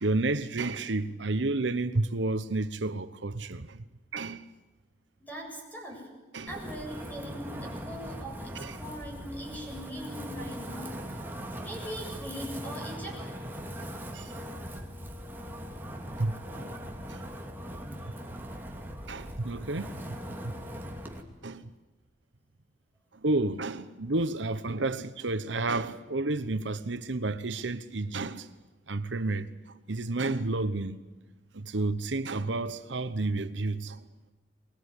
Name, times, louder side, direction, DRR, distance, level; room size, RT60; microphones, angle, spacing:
voice 1, 0.0-3.8 4.1-4.5 6.3-6.5 8.5-8.8 14.1-14.4 16.2-16.7 17.1-17.2 18.0-18.1 19.1-19.9 20.4-20.5 21.4-21.7 23.2-28.5 28.9-31.0 31.5-34.0, right 2 dB, 85° right, 1.0 m, -31 dB
voice 2, 5.2-6.1 6.5-11.0 11.6-13.3, equal, 10° left, 7.9 m, -41 dB
Wind, 6.5-21.2, equal, 10° right, 2.6 m, -40 dB
23.5 x 21.0 x 9.8 m
head